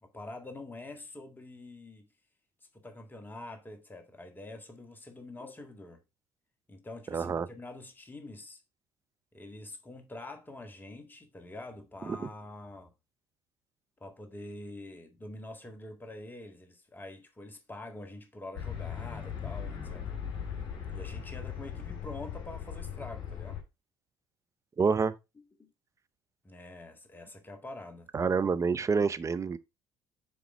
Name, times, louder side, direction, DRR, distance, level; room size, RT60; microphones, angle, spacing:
voice 1, 0.0-2.1 2.7-6.0 6.7-8.6 9.3-12.9 14.0-20.2 20.9-23.6 25.4-25.7 26.4-28.1, left 2 dB, 20° left, 1.7 m, -46 dB
voice 2, 7.1-7.5 12.1-12.2 24.8-25.1 28.1-29.6, right 5 dB, 30° right, 0.8 m, -27 dB
sound 1, 18.6-23.6, left 8 dB, 50° left, 2.5 m, -39 dB
7.0 x 3.9 x 4.6 m
hypercardioid pair, 60°, 10 cm